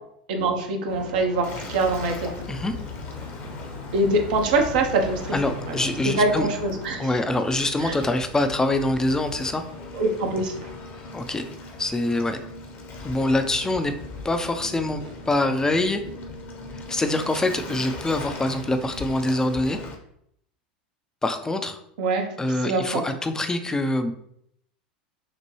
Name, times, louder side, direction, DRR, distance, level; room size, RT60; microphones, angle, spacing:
voice 1, 0.3-2.3 3.9-5.4 5.7-5.9 6.2-7.1 7.8-7.9 9.9-10.7 22.0-23.0, right 2 dB, 60° right, 3 dB, 0.8 m, -24 dB
sound 1, 0.9-6.9, left 3 dB, 70° left, 1.2 m, -39 dB
Waves surf, 1.4-19.9, left 2 dB, 45° left, 1.0 m, -39 dB
voice 2, 5.3-6.5 7.0-9.6 11.1-11.4 11.8-12.4 13.0-13.9 14.2-16.0 16.9-19.8 21.2-21.8 22.4-24.1, left 2 dB, 10° left, 7 dB, 0.5 m, -24 dB
6.1 x 2.2 x 3.1 m, 0.71 s
figure-of-eight pair, 85°, 5 cm